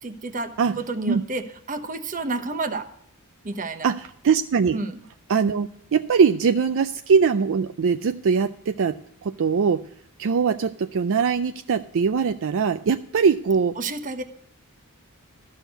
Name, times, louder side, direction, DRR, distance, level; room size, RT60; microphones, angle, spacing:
voice 1, 0.0-2.9 3.4-3.9 4.7-5.0 13.8-14.2, right 3 dB, 35° right, 9 dB, 1.0 m, -30 dB
voice 2, 3.8-4.8 5.3-9.0 9.2-9.8 10.2-13.8, right 6 dB, 60° right, 9 dB, 0.4 m, -21 dB
13.5 x 6.4 x 6.6 m, 0.70 s
head